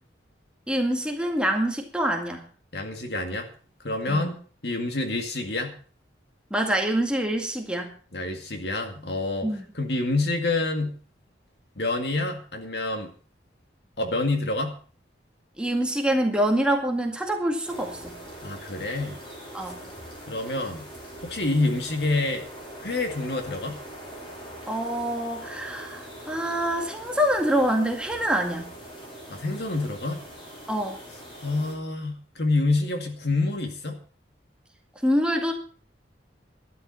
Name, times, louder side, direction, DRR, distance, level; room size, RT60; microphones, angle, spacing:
voice 1, 0.7-2.5 4.1-4.3 6.5-7.9 9.4-9.7 15.6-18.2 19.5-19.8 24.7-28.7 30.7-31.0 35.0-35.5, right 1 dB, 5° right, 1 dB, 2.0 m, -25 dB
voice 2, 2.7-3.5 3.8-4.4 4.6-5.8 8.1-9.5 9.7-11.0 11.8-13.1 14.0-14.8 18.4-19.2 20.3-20.9 21.2-22.5 22.8-23.8 29.3-30.2 31.4-34.0, left 2 dB, 60° left, 5 dB, 2.1 m, -27 dB
sound 1, 17.6-31.7, equal, 30° left, 5.1 m, -42 dB
12.0 x 11.0 x 5.6 m, 0.41 s
head